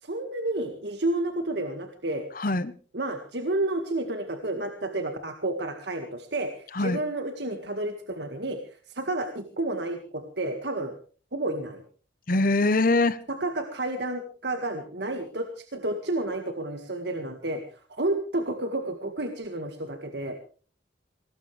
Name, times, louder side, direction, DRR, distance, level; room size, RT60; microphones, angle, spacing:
voice 1, 0.0-2.3 2.9-8.6 8.9-10.9 11.3-11.8 13.3-17.6 17.9-20.4, right 2 dB, 60° right, 5 dB, 1.9 m, -30 dB
voice 2, 2.4-2.7 6.7-7.0 12.3-13.2, left 2 dB, 45° left, 16 dB, 1.0 m, -23 dB
22.5 x 18.5 x 3.3 m, 0.40 s
head